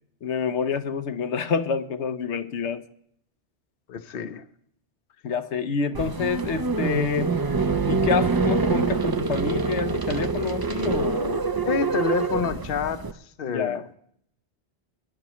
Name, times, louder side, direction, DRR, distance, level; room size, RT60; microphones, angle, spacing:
voice 1, 0.2-2.8 5.2-7.4 7.9-11.4 13.5-13.9, left 5 dB, 80° left, 9 dB, 1.1 m, -27 dB
voice 2, 3.9-4.5 11.6-13.0 13.4-13.8, left 6 dB, 60° left, 11 dB, 0.9 m, -28 dB
sound 1, 5.9-13.1, right 4 dB, 35° right, 0.4 m, -25 dB
22.5 x 11.0 x 3.0 m, 0.68 s
omnidirectional pair, 1.2 m